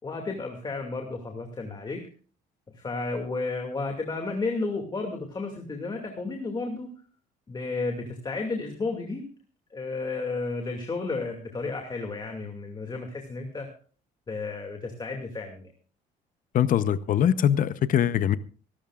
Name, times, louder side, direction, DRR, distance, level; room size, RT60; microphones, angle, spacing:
voice 1, 0.0-2.0 2.7-6.9 7.5-9.2 9.7-13.7 14.3-15.7, left 3 dB, 25° left, 2.4 m, -32 dB
voice 2, 16.5-18.4, left 9 dB, 55° left, 0.9 m, -22 dB
25.0 x 13.0 x 2.5 m
cardioid pair, 110°, 17 cm